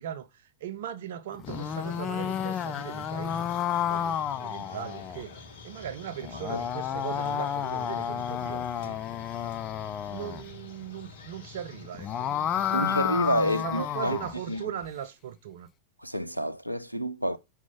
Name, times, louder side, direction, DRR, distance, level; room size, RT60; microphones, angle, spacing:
voice 1, 0.0-3.5 3.8-9.0 10.1-13.0 13.4-15.7, right 10 dB, 60° right, 0.6 m, -39 dB
sound 1, 1.3-5.2 6.2-10.4 11.8-14.3, left 9 dB, 30° left, 0.4 m, -31 dB
sound 2, 1.4-14.7, left 4 dB, 55° left, 1.2 m, -46 dB
voice 2, 12.7-14.2 14.5-14.7 16.0-17.4, equal, 90° left, 0.4 m, -28 dB
6.0 x 3.5 x 5.6 m
figure-of-eight pair, 90°, 0 cm